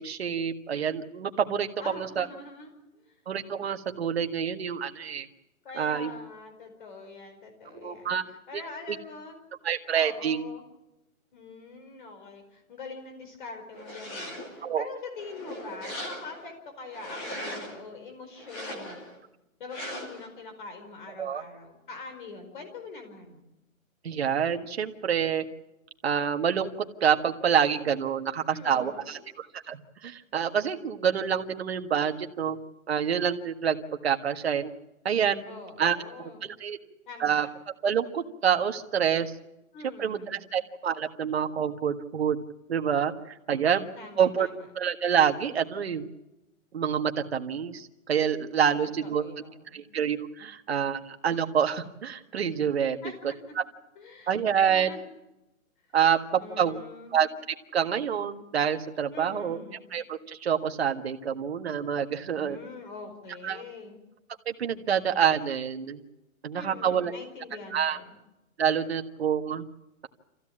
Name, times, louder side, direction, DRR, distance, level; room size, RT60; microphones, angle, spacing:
voice 1, 0.0-2.3 3.3-5.3 5.8-6.1 7.7-8.2 8.5-8.6 8.9-9.0 9.6-10.4 14.6-14.9 21.2-21.4 24.0-25.4 26.0-26.7 27.0-32.6 32.9-33.8 34.0-34.7 35.1-35.4 35.8-36.0 36.4-36.8 37.2-37.5 37.8-39.3 40.0-42.4 42.7-43.1 43.5-43.9 44.2-44.5 44.8-46.0 46.7-49.3 49.7-53.0 54.3-54.9 55.9-56.8 57.1-57.3 57.7-59.6 59.9-62.6 63.4-63.6 64.5-66.0 66.4-67.1 67.7-68.0 68.6-69.6, right 8 dB, 45° right, 6 dB, 1.7 m, -27 dB
voice 2, 1.8-3.2 5.6-9.3 9.9-10.6 11.3-19.0 19.6-23.4 28.5-29.3 35.5-36.5 37.1-37.5 39.7-40.5 44.0-44.7 48.8-49.8 53.0-53.2 53.9-55.0 56.4-57.2 59.1-59.9 62.2-64.0 66.5-68.2, left 3 dB, 35° left, 6 dB, 4.8 m, -44 dB
sound 1, 13.7-14.6 15.1-16.5 16.9-17.8 18.4-19.2 19.7-20.3, equal, 20° left, 2.5 m, -39 dB
26.0 x 15.5 x 8.8 m, 0.94 s
hypercardioid pair, 175°, 42 cm